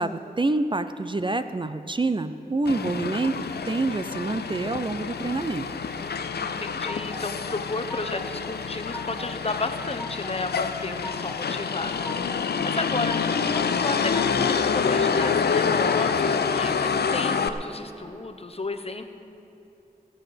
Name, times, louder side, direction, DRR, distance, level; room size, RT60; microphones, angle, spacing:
voice 1, 0.0-3.4 3.6-5.7, right 2 dB, 30° right, 11 dB, 0.5 m, -27 dB
Motor vehicle (road), 2.7-17.5, left 6 dB, 85° left, 0.5 m, -27 dB
voice 2, 6.0-13.2 13.5-19.0, left 3 dB, 40° left, 7 dB, 0.9 m, -33 dB
sound 1, 6.9-7.3 7.6-8.3 8.6-9.3 9.7-10.4 10.7-11.4 11.8-12.4 12.8-13.5 13.8-14.5 14.9-15.7, left 2 dB, 10° left, 1.0 m, -40 dB
16.5 x 6.7 x 7.8 m, 2.8 s
wide cardioid pair, 50°, 16 cm